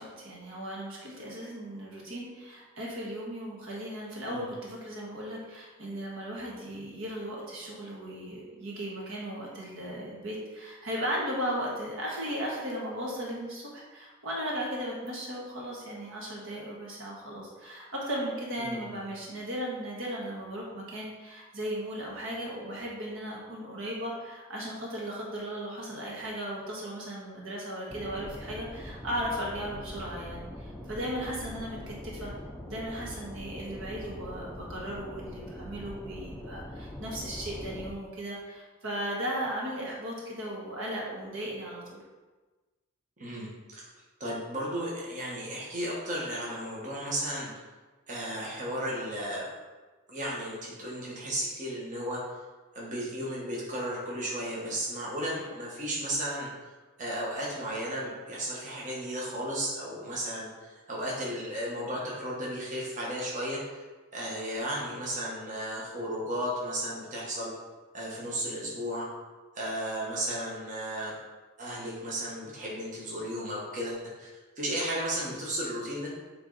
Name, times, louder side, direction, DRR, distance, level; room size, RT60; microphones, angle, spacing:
voice 1, 0.0-32.3 32.7-42.0, equal, 65° right, -3 dB, 1.5 m, -36 dB
voice 2, 18.6-18.9 43.2-43.9 44.2-47.5 48.1-49.5 50.1-52.4 52.7-56.5 57.0-63.8 64.1-67.5 67.9-69.1 69.5-71.1 71.6-74.3 74.6-76.1, equal, 40° right, -5 dB, 1.3 m, -34 dB
sound 1, 27.9-37.9, left 1 dB, 5° left, 0.5 m, -42 dB
8.1 x 3.4 x 4.0 m, 1.3 s
head